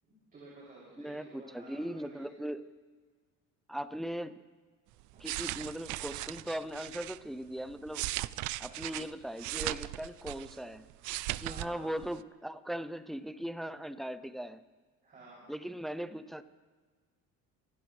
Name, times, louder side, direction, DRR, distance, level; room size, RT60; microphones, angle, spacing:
voice 1, 0.0-2.3 5.1-5.3 8.7-9.1 11.4-11.9 15.0-15.5, right 2 dB, 25° right, -7 dB, 6.1 m, -53 dB
voice 2, 1.0-2.6 3.7-4.4 5.2-8.0 8.6-10.8 11.4-14.6 15.5-16.4, equal, ahead, 12 dB, 0.4 m, -39 dB
sound 1, 5.0-7.2 7.7-10.6 10.9-11.7 12.0-12.2, right 17 dB, 65° right, 0.5 m, -38 dB
27.0 x 16.5 x 3.2 m, 1.5 s
cardioid pair, 170°, 32 cm